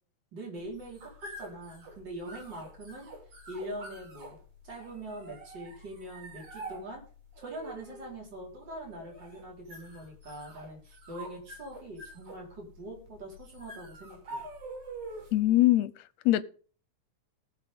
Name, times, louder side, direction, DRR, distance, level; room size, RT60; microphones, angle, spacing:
voice 1, 0.3-3.1 3.5-4.4 4.6-7.0 7.4-14.4, right 1 dB, 35° right, 4.9 m, -43 dB
sound 1, 0.6-15.5, right 2 dB, 80° right, 4.6 m, -46 dB
voice 2, 15.3-15.9 16.3-16.4, left 15 dB, 75° left, 1.9 m, -22 dB
19.5 x 7.0 x 3.6 m
omnidirectional pair, 3.3 m